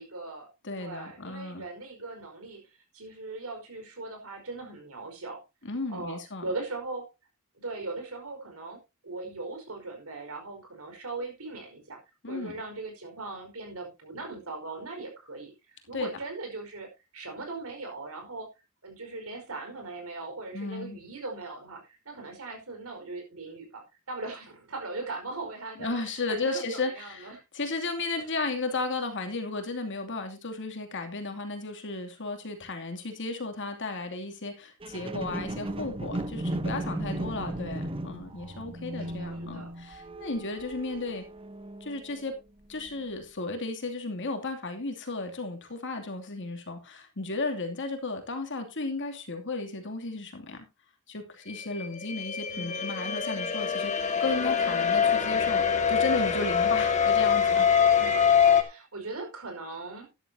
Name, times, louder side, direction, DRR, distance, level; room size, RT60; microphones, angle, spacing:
voice 1, 0.0-0.5 0.8-5.4 5.9-7.1 7.6-12.0 12.3-18.5 18.8-27.4 28.2-28.3 37.2-37.7 39.0-39.7 52.5-52.9 58.0-60.1, right 3 dB, 70° right, 4 dB, 5.0 m, -40 dB
voice 2, 0.6-1.6 5.6-6.4 12.2-12.5 15.9-16.1 20.5-21.0 25.8-41.2 41.8-42.3 42.7-50.7 51.1-58.0, left 3 dB, 60° left, 4 dB, 2.7 m, -34 dB
sound 1, 34.8-42.2 42.8-42.9, right 1 dB, 25° right, 1.0 m, -36 dB
sound 2, 51.5-58.6, left 7 dB, 35° left, 1.8 m, -24 dB
13.0 x 11.5 x 2.8 m, 0.25 s
head